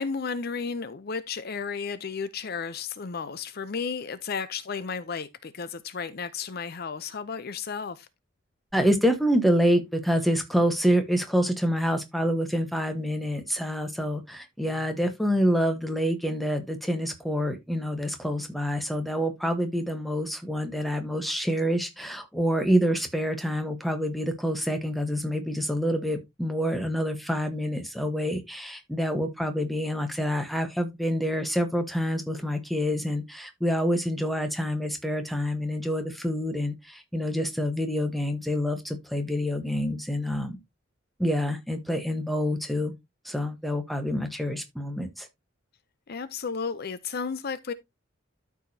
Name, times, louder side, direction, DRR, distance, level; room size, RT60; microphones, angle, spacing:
voice 1, 0.0-8.1 46.1-47.7, left 5 dB, 50° left, 0.5 m, -33 dB
voice 2, 8.7-40.6 41.2-42.9 43.2-45.3, equal, ahead, 1.1 m, -27 dB
12.5 x 4.9 x 2.7 m
head